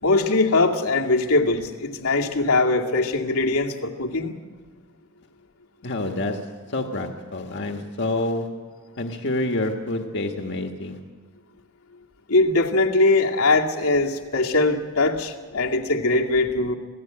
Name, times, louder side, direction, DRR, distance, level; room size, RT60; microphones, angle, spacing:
voice 1, 0.0-4.4 12.3-16.7, left 2 dB, 85° left, 0 dB, 2.3 m, -21 dB
voice 2, 5.8-6.4 6.7-8.5 9.0-11.0, left 2 dB, 55° left, 4 dB, 1.6 m, -27 dB
26.5 x 17.5 x 8.7 m, 1.5 s
head